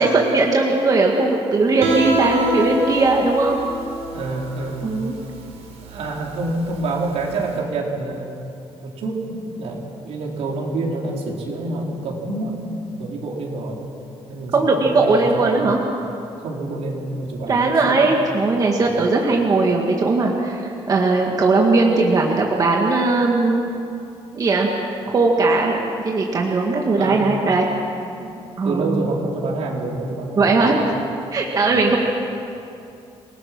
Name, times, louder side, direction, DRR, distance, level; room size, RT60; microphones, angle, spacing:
voice 1, 0.0-3.6 4.8-5.2 14.5-15.8 17.5-23.6 24.3-24.7 25.1-27.7 28.6-29.0 30.4-30.8 31.3-32.0, right 3 dB, 35° right, 0 dB, 1.8 m, -18 dB
Guitar, 1.8-7.5, right 1 dB, 90° right, 4.0 m, -27 dB
voice 2, 4.1-4.9 5.8-8.3 8.8-12.7 13.0-13.8 14.3-15.6 16.4-18.2 18.8-19.0 27.0-27.4 28.2-28.4 28.6-31.0 31.6-31.9, right 2 dB, 70° right, -1 dB, 4.2 m, -27 dB
28.0 x 20.0 x 6.1 m, 2.7 s
cardioid pair, 155°, 11 cm